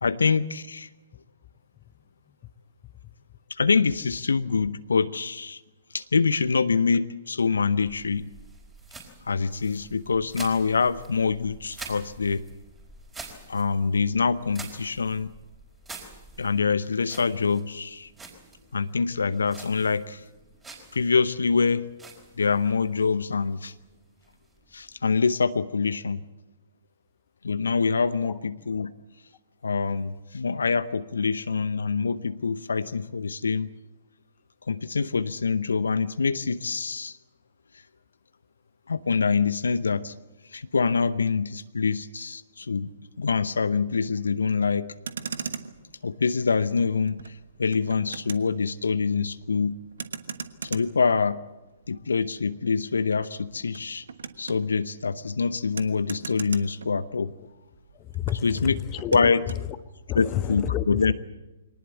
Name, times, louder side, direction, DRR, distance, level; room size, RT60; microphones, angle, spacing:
voice 1, 0.0-0.9 3.6-5.6 5.9-8.3 9.3-12.4 13.5-15.3 16.4-18.1 18.7-20.2 20.9-21.8 22.4-23.7 24.7-26.2 27.4-28.9 29.6-33.7 34.7-37.2 38.9-40.1 40.5-42.9 43.2-44.9 46.0-47.2 47.6-49.8 50.6-51.4 51.9-54.0 54.4-57.3 58.4-58.8 59.1-59.4 60.2-61.1, left 5 dB, 75° left, 14 dB, 0.8 m, -25 dB
sound 1, 7.7-25.0, right 3 dB, 10° right, 4.6 m, -47 dB
Motor vehicle (road), 44.8-57.5 57.7-59.7, right 5 dB, 65° right, 1.3 m, -41 dB
voice 2, 57.9-59.8 60.1-61.1, left 11 dB, 25° left, 13 dB, 1.1 m, -30 dB
23.5 x 19.0 x 8.3 m, 1.1 s
figure-of-eight pair, 120°, 0 cm